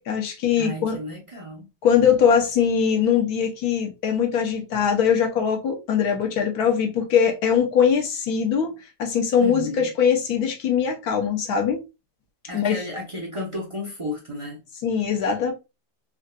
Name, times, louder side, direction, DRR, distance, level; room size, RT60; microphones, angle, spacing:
voice 1, 0.1-1.0 1.8-11.8 12.5-12.8 14.8-15.5, left 7 dB, 90° left, 1.3 m, -21 dB
voice 2, 0.6-1.7 9.4-9.9 12.5-14.6, left 1 dB, 30° right, 0.6 m, -33 dB
3.7 x 2.5 x 2.2 m
omnidirectional pair, 1.6 m